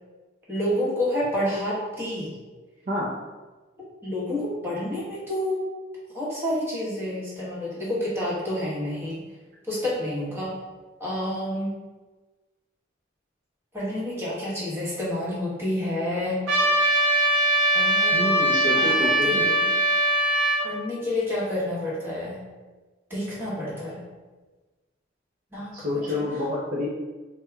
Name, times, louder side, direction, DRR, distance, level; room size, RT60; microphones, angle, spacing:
voice 1, 0.5-2.3 4.0-5.6 6.1-9.2 9.7-10.5 11.0-11.7 13.7-16.4 17.7-18.5 18.7-19.7 20.6-22.4 23.1-24.0 25.5-25.7 26.1-26.2, left 1 dB, 10° right, -7 dB, 1.2 m, -29 dB
Trumpet, 16.5-20.7, right 1 dB, 90° right, 0.7 m, -21 dB
voice 2, 18.1-19.5 25.7-26.9, left 1 dB, 45° right, -4 dB, 0.5 m, -28 dB
4.4 x 2.3 x 3.5 m, 1.3 s
head